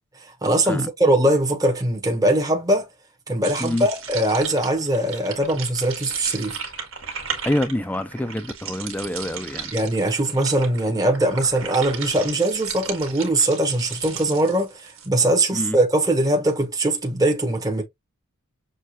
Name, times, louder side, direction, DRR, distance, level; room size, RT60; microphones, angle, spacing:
voice 1, 0.4-2.9 3.3-6.5 9.7-17.8, right 1 dB, 15° right, 0.9 m, -21 dB
sound 1, 3.4-15.1, right 6 dB, 65° right, 1.5 m, -35 dB
voice 2, 7.5-9.7 15.5-15.8, left 1 dB, 5° left, 0.4 m, -26 dB
6.4 x 2.4 x 2.8 m
head